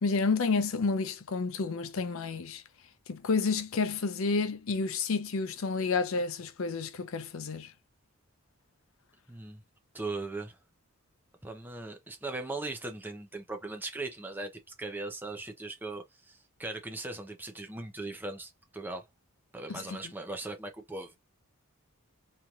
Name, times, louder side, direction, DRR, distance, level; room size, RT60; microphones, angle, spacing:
voice 1, 0.0-2.6 3.1-7.7 19.7-20.0, left 4 dB, 65° left, 0.5 m, -30 dB
voice 2, 9.3-9.6 9.9-10.6 11.4-14.5 14.8-19.1 19.5-21.2, right 2 dB, 10° right, 0.6 m, -39 dB
3.1 x 2.8 x 2.4 m
head